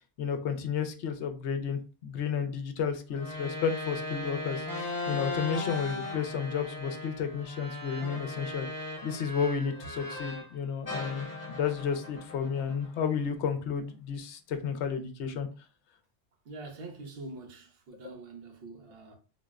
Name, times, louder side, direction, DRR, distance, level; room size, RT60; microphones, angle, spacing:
voice 1, 0.2-15.5, left 6 dB, 75° left, 0.8 m, -32 dB
sound 1, 3.1-10.5 10.9-13.2, left 2 dB, 20° left, 0.8 m, -38 dB
voice 2, 16.4-19.1, right 2 dB, 60° right, 0.9 m, -44 dB
3.8 x 2.0 x 2.4 m
omnidirectional pair, 1.2 m